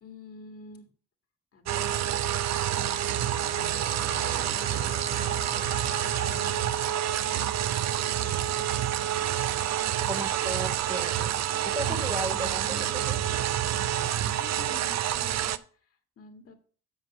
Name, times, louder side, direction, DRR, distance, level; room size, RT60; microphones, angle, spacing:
voice 1, 0.0-0.9 1.5-2.1 2.7-3.6 4.5-5.4 6.0-6.6 7.2-7.7 8.2-8.4 9.1-9.4 9.8-10.3 11.9-13.1 14.2-16.5, left 4 dB, 50° left, 5 dB, 1.9 m, -48 dB
sound 1, 1.7-15.6, right 11 dB, 60° right, 0.6 m, -28 dB
sound 2, 2.1-8.4, left 4 dB, 35° left, 1.4 m, -45 dB
sound 3, 9.1-14.2, left 2 dB, 5° left, 1.4 m, -56 dB
voice 2, 9.8-11.4 11.7-13.2, right 1 dB, 15° right, 5 dB, 0.9 m, -35 dB
8.1 x 6.0 x 5.5 m, 0.42 s
cardioid pair, 90°, 30 cm